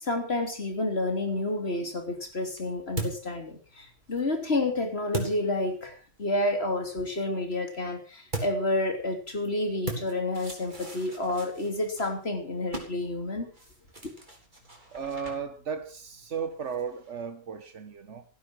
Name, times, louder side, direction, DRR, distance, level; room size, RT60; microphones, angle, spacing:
voice 1, 0.0-13.5, left 2 dB, 60° left, 3.4 m, -30 dB
sound 1, 1.8-6.2 8.3-17.1, right 2 dB, 40° right, 4.1 m, -41 dB
voice 2, 14.9-18.2, right 6 dB, 75° right, 1.5 m, -35 dB
16.0 x 11.0 x 6.2 m
omnidirectional pair, 1.2 m